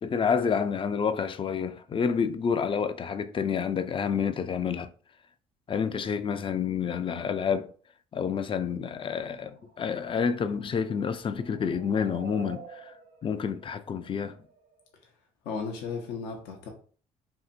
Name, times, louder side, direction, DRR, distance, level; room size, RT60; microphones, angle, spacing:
voice 1, 0.0-4.9 5.7-7.7 8.1-12.9 13.2-14.4, left 6 dB, 30° left, 0.3 m, -29 dB
sound 1, 9.2-14.9, right 4 dB, 70° right, 0.9 m, -50 dB
voice 2, 15.4-16.7, left 5 dB, 70° left, 0.6 m, -35 dB
2.7 x 2.6 x 2.4 m
hypercardioid pair, 60°, 17 cm